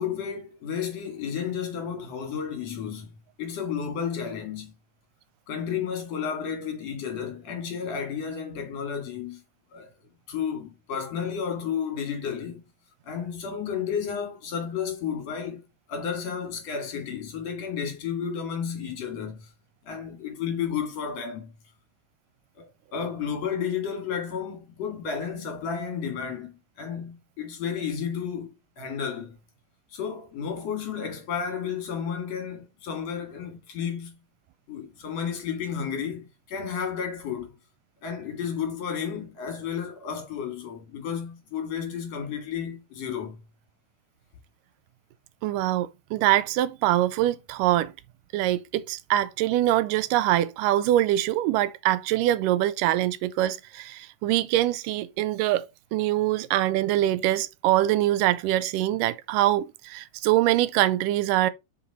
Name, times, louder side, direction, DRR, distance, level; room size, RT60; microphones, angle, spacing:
voice 1, 0.0-3.1 3.4-4.7 5.5-9.4 9.7-9.9 10.3-12.6 13.0-19.5 19.8-21.5 22.6-29.4 29.9-34.2 34.7-37.5 38.0-43.4, left 7 dB, 55° left, 3.4 m, -32 dB
voice 2, 45.4-47.9 48.3-61.5, right 14 dB, 85° right, 2.2 m, -24 dB
6.9 x 5.4 x 4.2 m
omnidirectional pair, 3.9 m